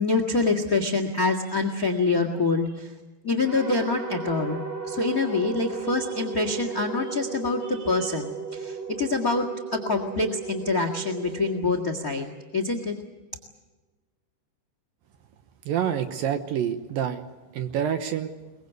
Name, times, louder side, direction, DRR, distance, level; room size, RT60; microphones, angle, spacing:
voice 1, 0.0-2.9 3.2-12.9, left 3 dB, 45° left, 7 dB, 1.1 m, -26 dB
sound 1, 3.4-12.8, right 5 dB, 35° right, 4.2 m, -35 dB
voice 2, 15.7-17.2 17.5-18.3, right 9 dB, 70° right, 8 dB, 2.4 m, -27 dB
23.0 x 22.0 x 8.2 m, 1.2 s
omnidirectional pair, 4.9 m